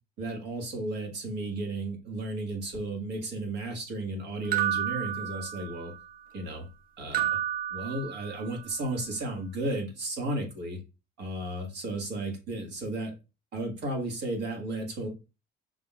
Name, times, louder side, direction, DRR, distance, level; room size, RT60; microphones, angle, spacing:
voice 1, 0.2-5.9 6.3-6.7 7.0-7.4 7.7-10.8 11.2-13.1 13.5-15.1, right 2 dB, 85° right, 2 dB, 1.7 m, -34 dB
sound 1, 4.5-6.0 7.1-8.6, right 11 dB, 55° right, 0.6 m, -31 dB
5.9 x 3.8 x 2.4 m, 0.29 s
cardioid pair, 110°, 17 cm